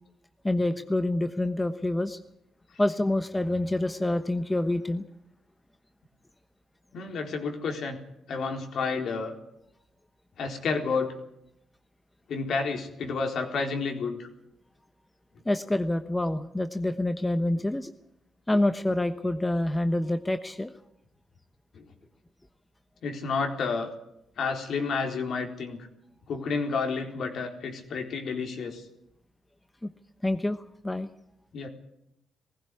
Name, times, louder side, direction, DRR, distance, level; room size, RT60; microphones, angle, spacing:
voice 1, 0.4-2.2 2.8-5.1 15.4-17.9 18.5-20.7 29.8-29.9 30.2-31.1, left 1 dB, 10° left, 9 dB, 1.1 m, -27 dB
voice 2, 6.9-8.0 8.3-9.3 10.4-11.1 12.3-14.3 21.7-21.8 23.0-23.9 24.4-25.8 26.3-28.8 31.5-31.7, left 4 dB, 65° left, 4 dB, 4.1 m, -30 dB
19.0 x 16.0 x 9.9 m, 0.81 s
cardioid pair, 90°, 0 cm